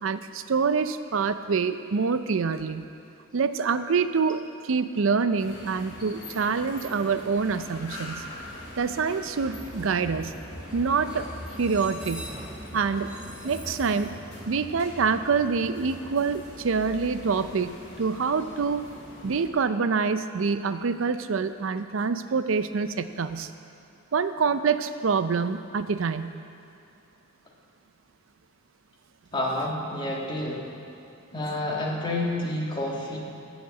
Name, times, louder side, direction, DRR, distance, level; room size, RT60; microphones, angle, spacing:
voice 1, 0.0-2.8 3.3-8.2 8.8-10.3 10.7-11.3 11.6-12.3 12.7-13.1 13.4-14.2 14.5-18.9 19.2-23.5 24.1-26.3, right 5 dB, 70° right, 11 dB, 0.5 m, -26 dB
sound 1, 5.4-19.5, left 1 dB, 55° left, 2.7 m, -43 dB
Train, 9.3-17.2, equal, 5° right, 1.1 m, -43 dB
voice 2, 29.3-30.8 31.3-33.2, left 1 dB, 25° left, -2 dB, 1.5 m, -29 dB
13.5 x 5.1 x 8.2 m, 2.7 s
head